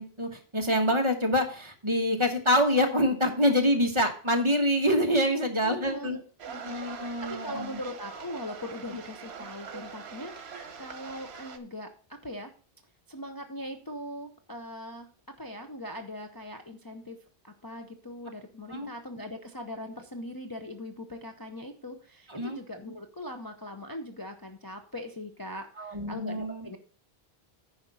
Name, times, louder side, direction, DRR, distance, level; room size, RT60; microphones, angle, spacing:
voice 1, 0.0-6.2 6.6-7.8 18.7-18.9 22.3-22.6 25.8-26.7, equal, 30° right, 3 dB, 1.3 m, -26 dB
voice 2, 5.6-12.5 13.1-15.1 15.4-17.2 17.4-26.8, left 1 dB, 25° left, 3 dB, 0.7 m, -41 dB
sound 1, 6.4-11.6, right 6 dB, 85° right, 1.2 m, -43 dB
9.6 x 5.2 x 5.5 m, 0.43 s
omnidirectional pair, 1.0 m